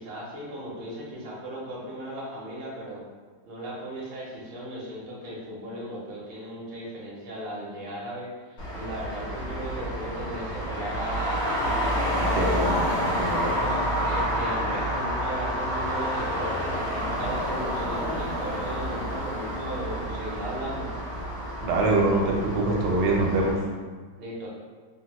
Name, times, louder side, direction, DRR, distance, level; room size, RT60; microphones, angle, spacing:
voice 1, 0.0-3.0 3.5-12.8 13.6-20.9 24.2-24.5, right 1 dB, 50° right, -6 dB, 0.7 m, -36 dB
Traffic noise roadway noise, 8.6-23.5, equal, 55° left, 1.0 m, -29 dB
voice 2, 12.3-12.7 13.0-13.5 21.6-23.6, right 2 dB, 80° right, -1 dB, 1.2 m, -24 dB
2.9 x 2.1 x 2.9 m, 1.5 s
omnidirectional pair, 1.8 m